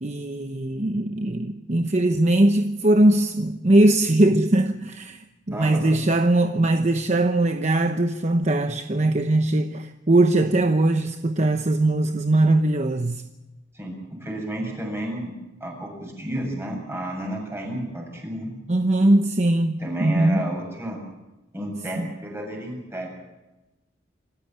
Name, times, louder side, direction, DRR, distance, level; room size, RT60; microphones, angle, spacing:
voice 1, 0.0-13.2 18.7-20.4 22.0-22.1, right 1 dB, 40° right, 1.0 m, -20 dB
voice 2, 5.5-6.0 13.7-15.3 15.6-18.5 19.8-21.0 21.5-23.1, right 1 dB, 15° right, 7.7 m, -31 dB
26.5 x 15.0 x 9.0 m
head